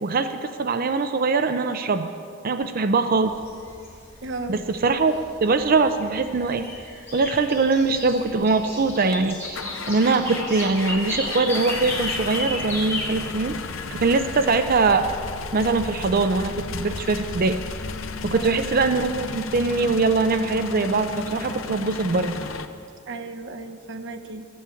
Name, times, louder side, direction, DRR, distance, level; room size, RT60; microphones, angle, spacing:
voice 1, 0.0-2.1 2.4-3.3 4.5-5.1 5.4-6.7 7.1-9.6 9.9-13.6 13.9-15.1 15.5-17.6 18.2-22.4, right 3 dB, 45° right, 9 dB, 0.5 m, -22 dB
sound 1, 3.2-14.4, left 1 dB, 15° left, 3.3 m, -35 dB
voice 2, 4.2-4.6 18.3-18.7 23.1-24.5, right 3 dB, 65° right, 7 dB, 0.9 m, -35 dB
sound 2, 9.1-22.7, left 4 dB, 80° left, 0.7 m, -34 dB
12.5 x 8.5 x 8.5 m, 2.4 s
head